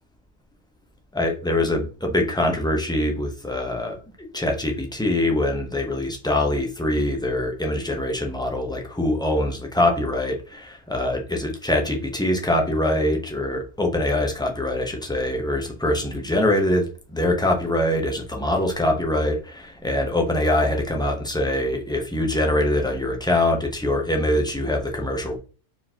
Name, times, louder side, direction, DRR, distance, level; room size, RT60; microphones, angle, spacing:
voice 1, 1.1-25.4, left 1 dB, 5° left, 2 dB, 0.6 m, -23 dB
4.5 x 3.8 x 2.8 m, 0.36 s
omnidirectional pair, 1.4 m